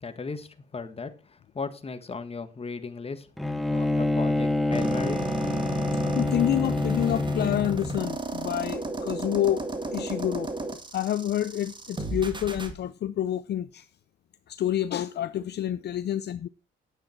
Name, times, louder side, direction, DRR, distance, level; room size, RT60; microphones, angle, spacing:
voice 1, 0.0-3.3 3.7-5.2, left 4 dB, 30° left, 1.5 m, -36 dB
Bowed string instrument, 3.4-8.0, left 2 dB, ahead, 1.4 m, -27 dB
sound 1, 4.7-12.7, right 2 dB, 25° right, 1.9 m, -33 dB
voice 2, 6.0-10.5 10.9-13.9 14.5-16.5, left 11 dB, 55° left, 0.6 m, -28 dB
10.0 x 8.8 x 4.4 m
cardioid pair, 90°, 20 cm